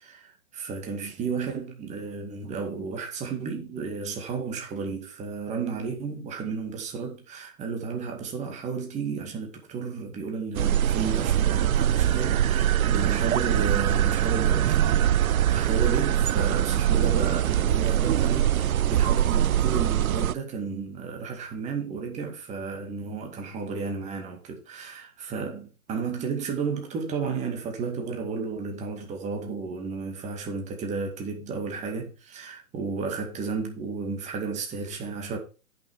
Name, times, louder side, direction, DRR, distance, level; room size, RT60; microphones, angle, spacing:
voice 1, 0.2-15.2 15.4-35.4, right 5 dB, 15° right, 2.1 m, -33 dB
sound 1, 10.6-20.3, right 10 dB, 75° right, 0.7 m, -23 dB
10.5 x 6.1 x 4.8 m
hypercardioid pair, 140°, 42 cm